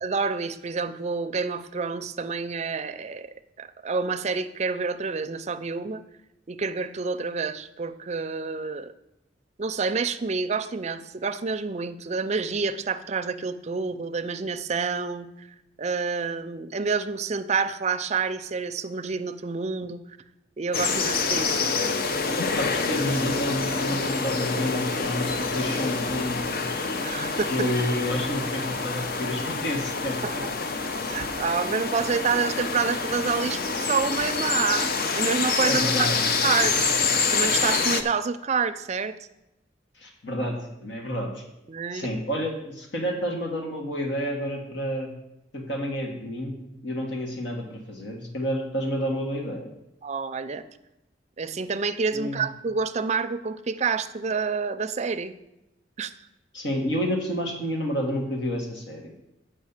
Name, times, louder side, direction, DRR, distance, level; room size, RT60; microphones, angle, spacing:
voice 1, 0.0-3.3 3.6-6.0 6.5-8.9 9.6-15.5 15.8-20.0 20.6-21.6 27.0-27.5 30.2-30.5 31.1-36.1 36.4-36.9 37.3-39.1 41.7-42.1 50.0-50.6 51.4-55.3 56.0-56.1, right 5 dB, 35° right, 9 dB, 0.5 m, -28 dB
sound 1, 20.7-38.0, left 4 dB, 55° left, 0.7 m, -27 dB
voice 2, 22.6-26.7 27.5-30.4 35.6-36.2 40.0-41.4 41.9-45.1 45.5-49.7 52.1-52.5 56.5-59.1, equal, 75° left, 0 dB, 1.9 m, -29 dB
7.4 x 5.5 x 7.2 m, 0.90 s
head